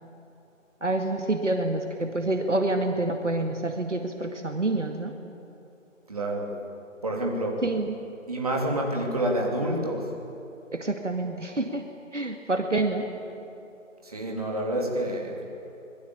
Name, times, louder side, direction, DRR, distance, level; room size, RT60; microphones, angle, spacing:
voice 1, 0.8-5.1 7.6-7.9 10.7-11.8 12.1-13.1, right 2 dB, 65° right, 4 dB, 2.1 m, -27 dB
voice 2, 6.1-6.6 7.0-7.6 8.3-10.1 14.0-15.5, right 1 dB, 30° right, -1 dB, 3.0 m, -28 dB
26.0 x 20.5 x 8.6 m, 3.0 s
figure-of-eight pair, 165°, 39 cm